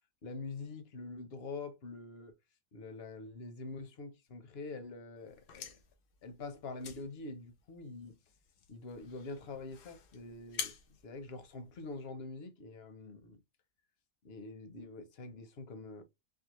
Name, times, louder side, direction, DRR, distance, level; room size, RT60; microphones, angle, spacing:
voice 1, 0.2-2.3 2.7-5.7 6.2-8.2 8.7-10.7 11.0-13.4 14.2-16.0, left 3 dB, 50° left, 0.9 m, -45 dB
sound 1, 5.2-12.1, left 7 dB, 85° left, 1.3 m, -48 dB
4.7 x 2.1 x 3.0 m
omnidirectional pair, 1.6 m